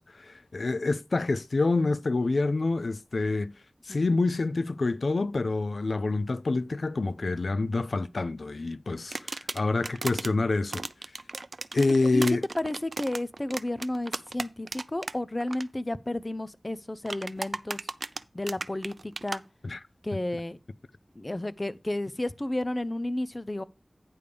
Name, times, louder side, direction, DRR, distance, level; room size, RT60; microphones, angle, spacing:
voice 1, 0.0-3.5 3.9-10.9 11.7-12.4 19.6-19.8, left 3 dB, 80° left, 0.4 m, -27 dB
sound 1, 9.1-10.3 10.7-15.1 15.4-15.6 17.1-19.4, right 3 dB, 70° right, 0.4 m, -35 dB
voice 2, 12.6-17.8 18.3-19.4 20.0-20.6 21.1-23.6, left 1 dB, 35° left, 0.5 m, -32 dB
9.5 x 3.4 x 6.8 m
wide cardioid pair, 55°, 0 cm